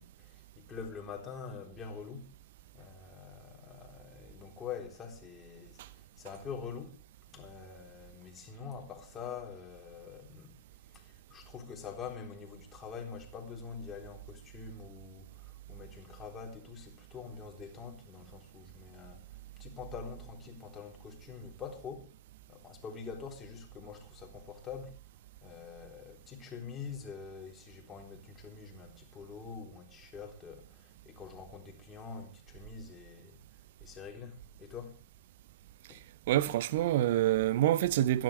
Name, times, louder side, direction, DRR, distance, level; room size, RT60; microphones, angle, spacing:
voice 1, 0.0-2.3 2.7-7.0 7.3-10.6 10.9-22.1 22.5-25.0 25.4-33.4 33.8-35.0 35.9-36.0, left 6 dB, 15° left, 3.6 m, -45 dB
voice 2, 36.3-38.2, right 13 dB, 45° right, 0.8 m, -26 dB
26.0 x 10.5 x 3.3 m
figure-of-eight pair, 110°, 0 cm